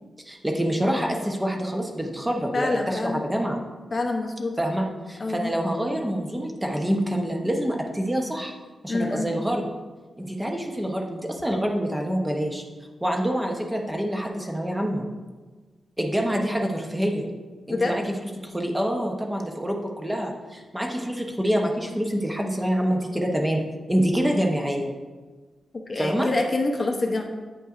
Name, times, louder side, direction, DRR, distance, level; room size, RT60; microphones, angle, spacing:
voice 1, 0.3-3.5 4.6-8.5 8.8-9.7 10.2-12.6 13.0-15.0 16.0-17.3 17.7-18.0 18.4-23.6 23.9-24.9 25.9-26.3, equal, 10° right, 1 dB, 0.7 m, -26 dB
voice 2, 2.5-3.2 3.9-4.5 5.2-5.5 8.9-9.3 17.7-17.9 25.9-27.2, left 2 dB, 35° left, 2 dB, 0.6 m, -26 dB
9.0 x 5.5 x 2.4 m, 1.3 s
wide cardioid pair, 145°, 0 cm